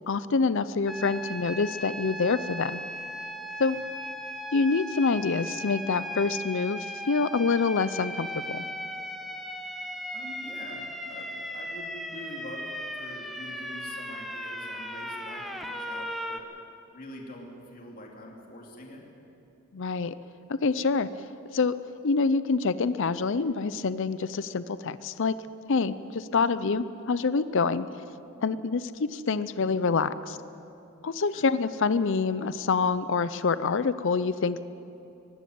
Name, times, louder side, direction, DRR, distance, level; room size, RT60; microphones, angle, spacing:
voice 1, 0.1-2.8 3.6-3.8 4.5-8.6 19.7-20.1 20.5-21.1 21.5-21.7 22.0-25.4 25.7-27.9 28.4-30.4 31.0-34.7, left 4 dB, 60° left, 14 dB, 0.5 m, -26 dB
sound 1, 0.9-16.4, equal, ahead, 1.2 m, -37 dB
voice 2, 10.1-12.7 12.9-16.4 16.9-19.1 31.3-31.5, left 1 dB, 40° left, -1 dB, 2.7 m, -44 dB
23.0 x 12.5 x 9.4 m, 2.8 s
head